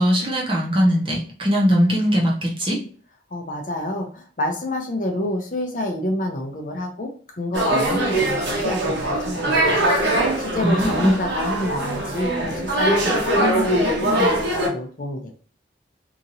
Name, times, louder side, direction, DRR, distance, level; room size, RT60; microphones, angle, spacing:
voice 1, 0.0-2.8 10.6-11.2, equal, 30° right, -3 dB, 0.8 m, -20 dB
voice 2, 3.3-15.3, left 1 dB, 45° left, 2 dB, 0.6 m, -28 dB
sound 1, 7.5-14.7, right 1 dB, 85° right, 1.1 m, -22 dB
2.9 x 2.5 x 2.7 m, 0.43 s
head